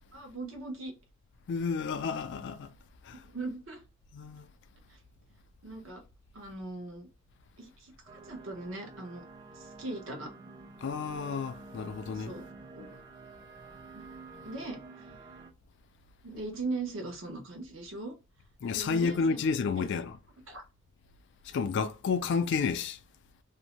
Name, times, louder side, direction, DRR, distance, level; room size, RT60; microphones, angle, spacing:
voice 1, 0.1-0.9 3.2-3.8 4.9-5.0 5.6-6.0 6.3-7.1 7.6-9.2 9.5-10.3 12.1-12.4 12.7-12.9 13.9-14.0 14.4-15.1 16.2-18.1 18.7-19.5 19.8-19.9 20.5-20.6, right 2 dB, 70° right, 0.9 m, -39 dB
voice 2, 1.5-2.7 3.0-3.2 4.1-4.5 10.8-12.3 18.6-20.1 21.5-23.0, left 5 dB, 60° left, 0.3 m, -31 dB
sound 1, 8.1-15.5, right 3 dB, 20° right, 0.4 m, -49 dB
2.6 x 2.1 x 2.9 m
head